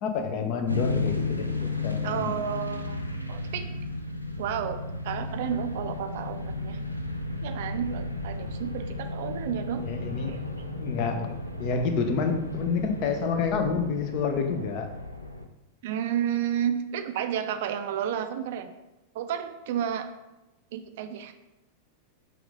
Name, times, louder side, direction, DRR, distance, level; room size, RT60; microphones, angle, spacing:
voice 1, 0.0-2.3 9.8-10.3 10.8-11.3 11.6-14.9, left 5 dB, 45° left, 6 dB, 0.5 m, -28 dB
sound 1, 0.7-15.5, left 2 dB, 90° left, 0.4 m, -34 dB
voice 2, 2.0-3.0 3.3-3.7 4.4-6.8 7.4-9.8 10.3-10.4 15.8-18.7 19.1-20.1 20.7-21.3, right 9 dB, 55° right, 8 dB, 0.3 m, -31 dB
5.8 x 2.5 x 3.6 m, 0.99 s
figure-of-eight pair, 90°, 0 cm